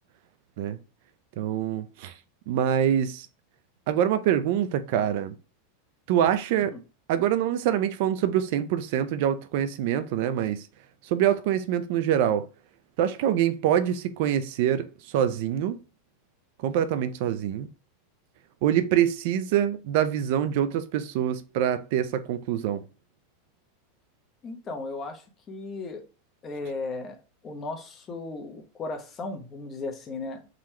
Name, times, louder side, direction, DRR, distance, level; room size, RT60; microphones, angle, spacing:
voice 1, 1.4-2.1 2.5-3.3 3.9-5.3 6.1-6.7 7.1-10.7 11.0-12.5 13.0-14.9 15.1-15.8 16.6-17.7 18.6-22.8, right 10 dB, 55° right, 0.5 m, -25 dB
voice 2, 24.4-26.0 26.4-27.2 27.4-30.5, left 3 dB, 20° left, 0.9 m, -36 dB
3.8 x 3.1 x 4.3 m
supercardioid pair, 150°, 0 cm